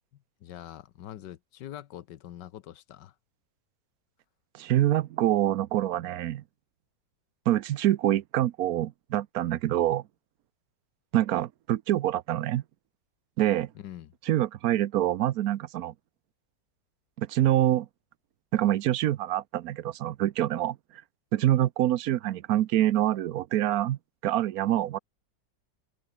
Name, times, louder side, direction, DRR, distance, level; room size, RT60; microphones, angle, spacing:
voice 1, 0.1-3.1 13.7-14.1, left 12 dB, 70° left, 1.4 m, -44 dB
voice 2, 4.5-6.4 7.5-10.0 11.1-12.6 13.4-13.7 14.3-15.9 17.2-17.9 18.5-20.8 21.3-25.0, right 13 dB, 65° right, 0.9 m, -26 dB
open air
omnidirectional pair, 2.0 m